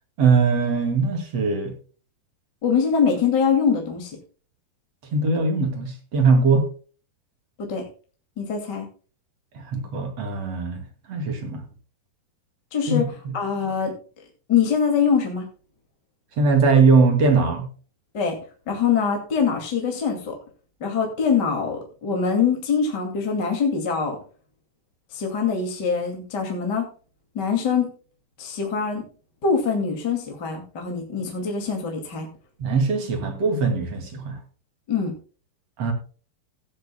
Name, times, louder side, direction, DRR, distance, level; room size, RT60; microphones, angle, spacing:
voice 1, 0.2-1.7 5.1-6.7 9.5-10.8 11.1-11.6 12.9-13.0 16.4-17.7 32.6-34.4 35.8-35.9, right 4 dB, 45° right, 6 dB, 3.0 m, -20 dB
voice 2, 2.6-4.2 7.6-7.8 8.4-8.9 12.7-13.1 13.3-13.9 14.5-15.5 18.1-18.4 18.7-20.4 20.8-24.2 25.1-26.9 27.3-27.9 28.4-29.0 29.4-32.3 34.9-35.1, left 6 dB, 30° left, 2 dB, 2.3 m, -23 dB
16.0 x 12.5 x 2.2 m, 0.39 s
omnidirectional pair, 4.7 m